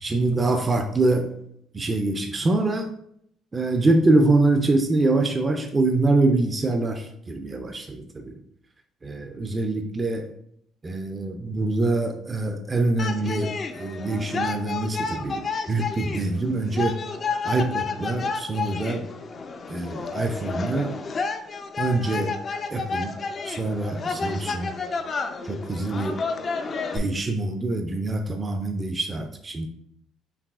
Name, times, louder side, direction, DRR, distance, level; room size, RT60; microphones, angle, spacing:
voice 1, 0.0-1.3 1.7-2.9 3.5-8.4 9.0-10.3 10.8-17.0 17.4-19.1 19.7-21.0 21.8-22.4 22.7-23.1 23.4-24.7 25.4-26.2 26.9-29.7, right 2 dB, 25° right, 5 dB, 0.4 m, -24 dB
sound 1, 13.0-27.0, left 4 dB, 40° left, 0.4 m, -31 dB
4.7 x 2.7 x 2.3 m, 0.71 s
supercardioid pair, 70°, 0 cm